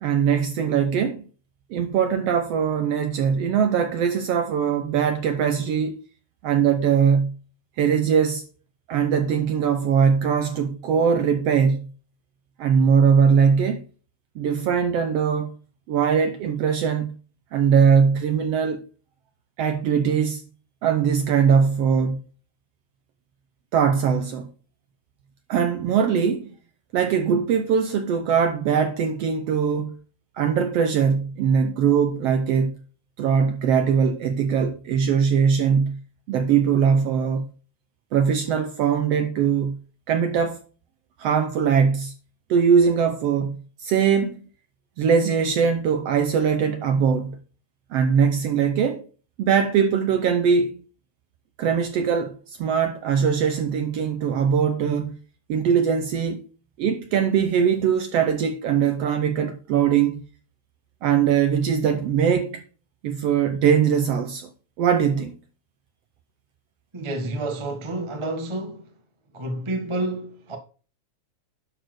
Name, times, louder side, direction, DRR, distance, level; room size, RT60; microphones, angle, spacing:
voice 1, 0.0-1.2 1.7-6.0 6.4-7.3 7.8-8.4 8.9-11.9 12.6-13.8 14.4-15.5 15.9-17.1 17.5-18.8 19.6-20.4 20.8-22.2 23.7-24.5 25.5-26.5 26.9-30.0 30.3-32.7 33.2-36.0 36.3-37.5 38.1-39.8 40.1-40.6 41.2-42.1 42.5-44.4 45.0-47.4 47.9-49.0 49.4-50.8 51.6-55.2 55.5-56.4 56.8-60.2 61.0-62.6 63.0-64.5 64.8-65.3, right 7 dB, 75° right, 1.5 m, -21 dB
voice 2, 66.9-68.9 69.3-70.6, right 2 dB, 35° right, 0.4 m, -29 dB
11.0 x 4.2 x 6.4 m
omnidirectional pair, 3.5 m